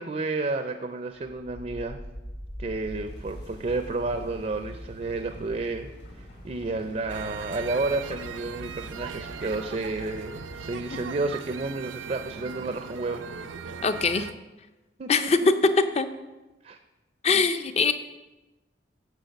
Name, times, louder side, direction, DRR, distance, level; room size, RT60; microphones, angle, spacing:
voice 1, 0.0-2.0 2.6-5.9 6.2-13.2 15.0-15.5 16.6-16.8 17.3-17.4, right 3 dB, 35° right, 7 dB, 0.4 m, -31 dB
sound 1, 1.2-11.9, equal, 70° left, 2.7 m, -44 dB
sound 2, 7.1-14.3, right 6 dB, 90° right, 0.5 m, -39 dB
voice 2, 13.8-14.3 15.1-15.4 16.0-16.1 17.2-17.9, left 5 dB, 35° left, 10 dB, 0.5 m, -23 dB
9.0 x 4.7 x 6.9 m, 1.1 s
head